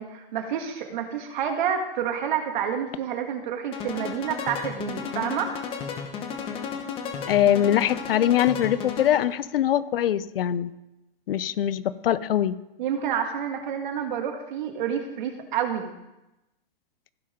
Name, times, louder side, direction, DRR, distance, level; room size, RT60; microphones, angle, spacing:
voice 1, 0.0-5.5 12.8-15.9, right 8 dB, 55° right, 4 dB, 1.8 m, -29 dB
sound 1, 3.7-9.4, left 6 dB, 20° left, 1.0 m, -34 dB
voice 2, 7.3-10.7 11.3-12.6, left 11 dB, 70° left, 16 dB, 0.7 m, -22 dB
15.5 x 5.6 x 5.1 m, 0.94 s
hypercardioid pair, 160°, 30 cm